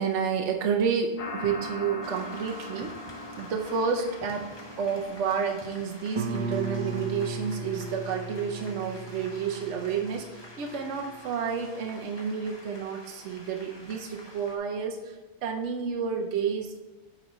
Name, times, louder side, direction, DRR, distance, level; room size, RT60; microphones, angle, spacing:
voice 1, 0.0-2.9 3.4-4.5 4.8-16.8, right 6 dB, 65° right, 2 dB, 1.0 m, -30 dB
sound 1, 1.2-6.4, left 2 dB, 55° left, 0.3 m, -40 dB
sound 2, 2.0-14.6, left 1 dB, 20° left, 1.1 m, -48 dB
Guitar, 6.1-11.6, right 2 dB, 40° right, 0.4 m, -36 dB
9.1 x 4.2 x 4.1 m, 1.2 s
omnidirectional pair, 1.3 m